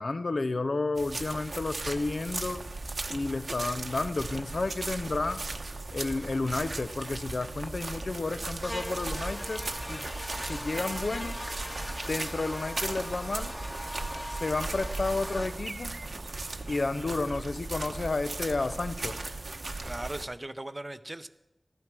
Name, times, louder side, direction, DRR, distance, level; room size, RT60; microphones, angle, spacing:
voice 1, 0.0-2.6 3.1-5.4 5.9-10.0 10.5-11.4 12.1-13.6 14.3-15.9 16.7-19.1, left 3 dB, 75° left, 11 dB, 0.6 m, -31 dB
sound 1, 0.9-20.2, right 2 dB, 70° right, 0.9 m, -37 dB
Buzz, 8.6-15.5, equal, 25° left, 1.5 m, -40 dB
voice 2, 16.9-17.3 19.8-21.3, right 1 dB, 35° right, 12 dB, 0.6 m, -39 dB
14.5 x 9.3 x 6.1 m, 0.93 s
wide cardioid pair, 65°, 0 cm